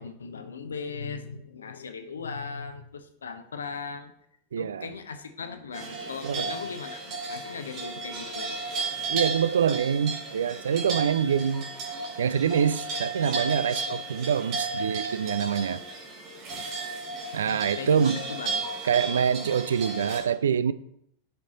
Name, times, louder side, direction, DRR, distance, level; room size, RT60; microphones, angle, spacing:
voice 1, 0.0-4.1 4.6-7.0 7.3-8.5 9.0-9.2 17.4-18.7, left 5 dB, 70° left, 0.8 m, -38 dB
voice 2, 4.5-4.9 6.2-6.6 9.1-11.7 12.2-15.8 17.3-18.2 18.8-20.7, right 7 dB, 65° right, 0.3 m, -25 dB
sound 1, 5.7-20.2, right 3 dB, 40° right, 2.7 m, -34 dB
10.0 x 4.8 x 3.9 m
figure-of-eight pair, 90°, 0 cm